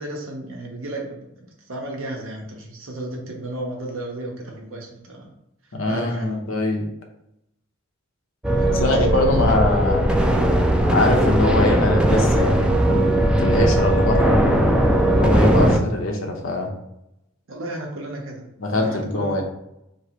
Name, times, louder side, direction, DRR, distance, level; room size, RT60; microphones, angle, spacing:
voice 1, 0.0-5.3 5.9-6.4 8.6-9.6 17.5-18.4 18.7-19.4, right 1 dB, 80° right, 0 dB, 1.0 m, -33 dB
voice 2, 5.7-6.9 8.8-10.1 10.9-14.4 15.1-16.7 18.6-19.4, left 2 dB, 75° left, 1 dB, 0.9 m, -23 dB
sound 1, 8.4-15.8, right 1 dB, 5° right, 0.3 m, -18 dB
3.2 x 2.9 x 4.4 m, 0.82 s
head